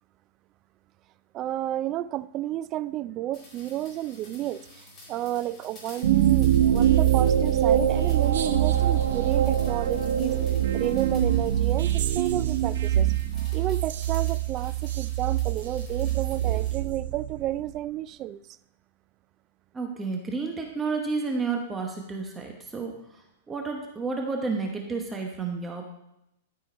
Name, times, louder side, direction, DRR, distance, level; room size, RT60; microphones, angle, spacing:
voice 1, 1.3-10.4 10.7-13.1 13.5-18.4, right 13 dB, 30° right, 16 dB, 0.3 m, -31 dB
sound 1, 3.3-16.8, left 1 dB, 25° left, 3.2 m, -51 dB
sound 2, 6.0-17.6, right 11 dB, 75° right, 0.8 m, -24 dB
voice 2, 19.7-22.9 23.5-25.8, right 4 dB, 15° right, 1 dB, 1.2 m, -31 dB
13.0 x 4.5 x 4.5 m, 0.82 s
hypercardioid pair, 145°, 0 cm